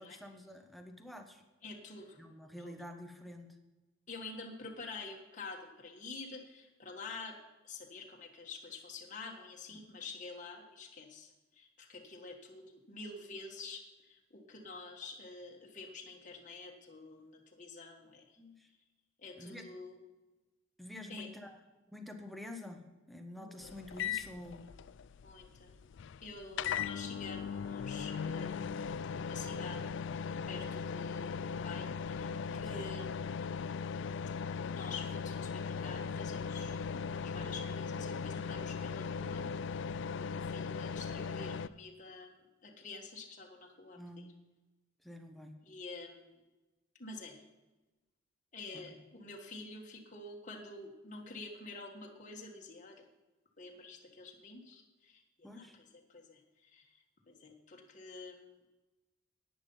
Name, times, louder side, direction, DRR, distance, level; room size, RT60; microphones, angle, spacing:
voice 1, 0.0-1.4 2.2-3.5 18.4-18.7 19.4-19.7 20.8-21.6 21.9-22.8 23.1-24.7 32.7-32.8 43.9-44.3 45.0-45.6 48.7-48.8 55.4-55.8, left 1 dB, ahead, 5 dB, 1.1 m, -48 dB
voice 2, 1.6-2.2 2.6-2.7 4.1-7.4 7.6-18.2 19.2-20.0 21.1-21.3 23.4-23.7 25.2-25.7 26.2-28.7 29.1-33.3 34.7-39.5 40.2-44.3 45.6-46.3 47.0-47.4 48.5-53.0 53.6-55.8 56.1-56.9 57.3-58.5, left 3 dB, 40° left, 0 dB, 1.5 m, -48 dB
sound 1, 23.6-41.7, left 6 dB, 60° left, 0.4 m, -38 dB
11.0 x 9.3 x 5.5 m, 1.1 s
head